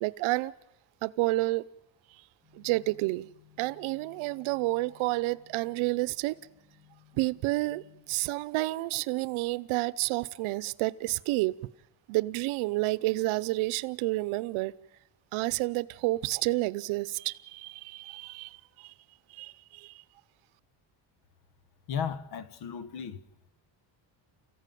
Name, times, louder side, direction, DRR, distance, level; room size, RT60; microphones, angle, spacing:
voice 1, 0.0-0.5 1.0-1.7 2.5-3.3 3.6-6.4 7.1-11.5 12.1-14.7 15.3-18.9 19.3-20.0, right 20 dB, 85° right, 0.8 m, -30 dB
sound 1, 2.4-8.0, left 11 dB, 25° left, 7.3 m, -60 dB
voice 2, 21.9-23.2, left 7 dB, 55° left, 1.1 m, -35 dB
29.5 x 15.0 x 9.2 m
cardioid pair, 175°, 48 cm